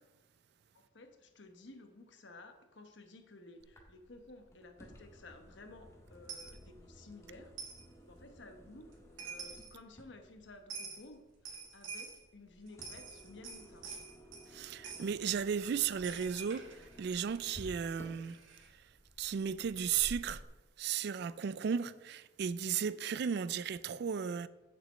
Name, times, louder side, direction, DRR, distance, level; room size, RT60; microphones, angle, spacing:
voice 1, 0.7-7.5 8.0-13.9, left 2 dB, 65° left, 1.1 m, -55 dB
sound 1, 3.6-20.4, equal, 15° left, 1.5 m, -55 dB
Coin (dropping), 6.3-6.5 7.6-7.8 8.9-9.0 9.2-9.7 10.7-11.0 11.5-12.2 12.7-14.5 14.8-15.1 16.0-18.7, right 5 dB, 85° right, 2.0 m, -47 dB
voice 2, 14.5-18.4 19.2-20.4 20.8-24.5, right 7 dB, 55° right, 0.3 m, -35 dB
6.8 x 6.1 x 7.4 m
head